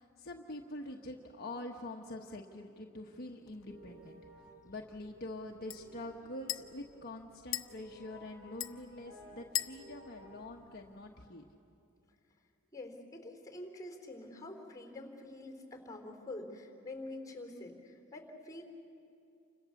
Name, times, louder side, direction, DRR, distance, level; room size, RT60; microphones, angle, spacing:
voice 1, 0.0-4.2 4.6-11.5, left 1 dB, 50° left, 0 dB, 1.2 m, -45 dB
sound 1, 2.5-10.5, equal, 85° right, 4.0 m, -57 dB
sound 2, 3.5-11.3, left 13 dB, 75° left, 0.9 m, -45 dB
voice 2, 12.7-18.6, left 2 dB, 15° left, 3 dB, 3.7 m, -46 dB
29.5 x 26.0 x 7.2 m, 2.5 s
head